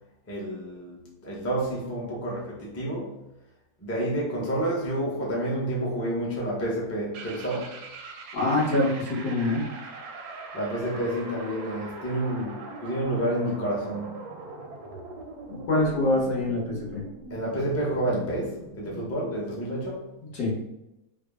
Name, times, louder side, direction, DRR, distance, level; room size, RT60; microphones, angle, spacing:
voice 1, 0.3-3.1 3.8-7.7 10.5-14.2 17.3-20.0, right 1 dB, 25° left, -4 dB, 0.3 m, -29 dB
sound 1, 7.1-19.2, right 3 dB, 90° right, 1.2 m, -42 dB
voice 2, 8.3-9.6 15.5-17.0 20.3-20.5, left 2 dB, 75° left, -4 dB, 1.6 m, -25 dB
3.6 x 2.0 x 3.4 m, 0.91 s
omnidirectional pair, 1.7 m